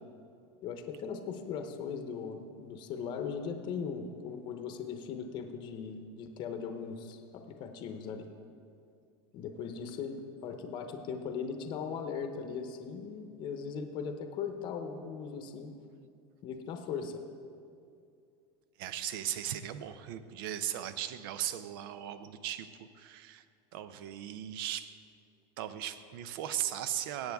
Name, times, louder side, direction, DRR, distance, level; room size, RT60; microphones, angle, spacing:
voice 1, 0.6-8.3 9.3-15.7 16.4-17.2, left 6 dB, 40° left, 6 dB, 0.8 m, -39 dB
voice 2, 18.8-23.4 23.7-25.0 25.6-27.3, right 11 dB, 75° right, 12 dB, 0.6 m, -37 dB
17.5 x 7.9 x 3.5 m, 2.4 s
supercardioid pair, 155°, 12 cm